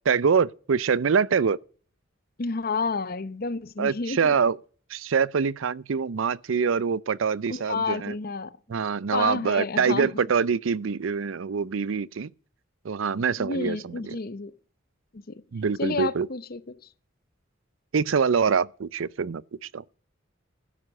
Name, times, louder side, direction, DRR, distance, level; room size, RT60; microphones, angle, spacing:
voice 1, 0.1-1.6 3.8-4.6 4.9-8.2 8.7-12.3 12.8-14.2 15.5-16.3 17.9-19.4 19.7-19.8, right 6 dB, 85° right, 0.5 m, -25 dB
voice 2, 2.4-4.3 7.5-8.5 9.1-10.1 13.4-14.5 15.1-15.4 15.8-16.6, left 4 dB, 50° left, 0.8 m, -30 dB
12.5 x 10.0 x 6.5 m
head